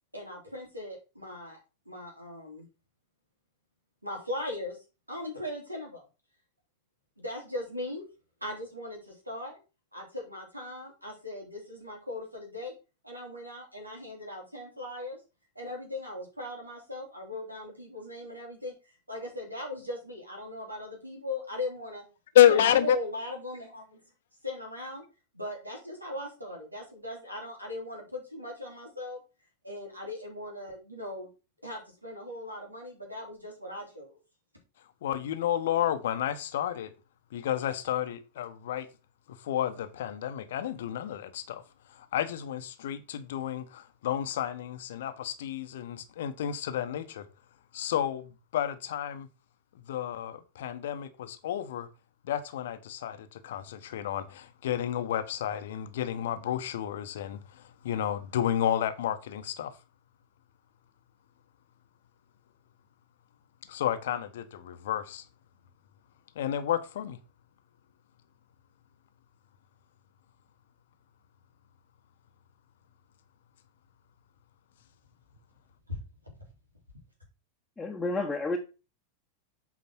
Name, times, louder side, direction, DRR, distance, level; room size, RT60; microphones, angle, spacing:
voice 1, 0.1-1.6 1.9-2.7 4.0-4.8 5.1-6.0 7.2-8.0 8.4-9.6 9.9-12.7 13.0-15.2 15.6-18.7 19.1-22.0 22.5-24.0 24.4-25.0 25.3-29.2 29.6-31.3 31.6-34.1 75.9-76.0, left 1 dB, 85° right, 3.6 m, -39 dB
voice 2, 22.3-23.0 35.0-36.9 37.3-38.9 39.4-41.6 42.1-47.2 47.7-48.3 48.5-49.3 49.9-51.9 52.3-57.4 57.8-59.7 63.7-65.2 66.4-67.2, left 11 dB, 60° left, 1.0 m, -29 dB
voice 3, 77.8-78.6, left 2 dB, 10° left, 1.3 m, -30 dB
8.4 x 5.1 x 4.5 m
figure-of-eight pair, 90°, 0 cm